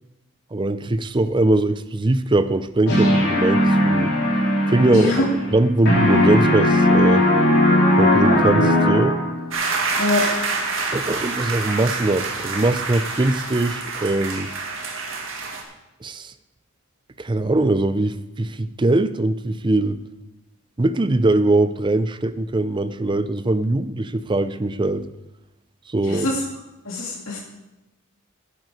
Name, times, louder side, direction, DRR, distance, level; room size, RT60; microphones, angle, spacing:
voice 1, 0.5-4.1 4.7-5.1 5.5-7.2 8.0-9.2 10.9-14.5 16.0-16.3 17.2-20.0 20.8-25.1 25.9-26.3, right 2 dB, 25° right, 12 dB, 0.5 m, -21 dB
sound 1, 2.9-5.6 5.9-9.5, left 1 dB, 55° left, 3.3 m, -18 dB
voice 2, 4.9-5.3 10.0-10.3 26.0-26.4 26.8-27.4, left 2 dB, 85° left, -2 dB, 2.2 m, -23 dB
sound 2, 9.5-15.6, right 4 dB, 70° right, 2.0 m, -27 dB
11.0 x 10.5 x 4.9 m, 0.97 s
head